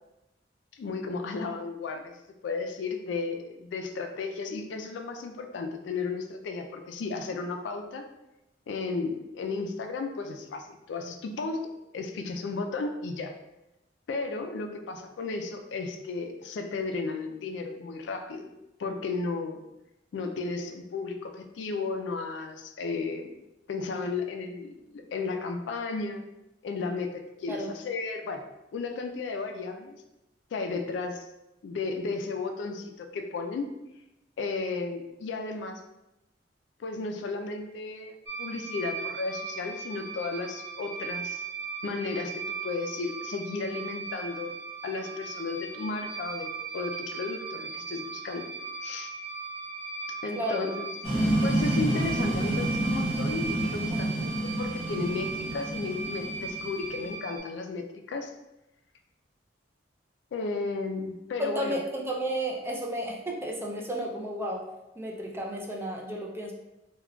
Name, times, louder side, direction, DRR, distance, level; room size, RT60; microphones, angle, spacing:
voice 1, 0.7-2.1 2.4-8.0 8.7-11.7 11.9-13.3 14.1-18.5 18.8-19.6 20.1-23.3 23.7-26.2 26.6-28.5 28.7-30.0 30.5-31.3 31.6-33.7 34.4-35.8 36.8-41.4 41.8-44.5 44.8-48.5 48.8-49.1 50.2-50.9 51.4-58.3 60.3-61.8, left 4 dB, 70° left, 5 dB, 0.3 m, -34 dB
sound 1, 38.3-57.4, right 5 dB, 70° right, 0.6 m, -38 dB
voice 2, 50.4-50.7 53.9-54.2 61.4-64.6 65.0-66.5, right 1 dB, 15° right, -1 dB, 0.4 m, -32 dB
sound 2, 51.0-57.1, right 1 dB, 25° left, 1.0 m, -29 dB
3.6 x 2.2 x 2.2 m, 0.93 s
head